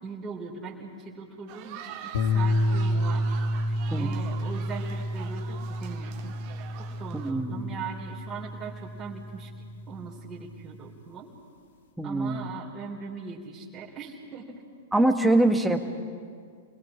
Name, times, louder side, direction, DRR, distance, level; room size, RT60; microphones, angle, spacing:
voice 1, 0.0-3.2 3.7-6.3 6.8-9.5 9.9-11.3 12.0-14.6, right 5 dB, 20° right, -5 dB, 3.6 m, -40 dB
sound 1, 1.5-7.3, right 9 dB, 45° right, 1.9 m, -44 dB
sound 2, 2.1-10.5, left 1 dB, 65° left, 1.8 m, -30 dB
voice 2, 3.9-4.3 7.1-7.7 12.0-12.5 14.9-15.8, right 2 dB, 5° right, 5 dB, 1.7 m, -24 dB
29.5 x 22.0 x 5.0 m, 2.1 s
figure-of-eight pair, 105°, 0 cm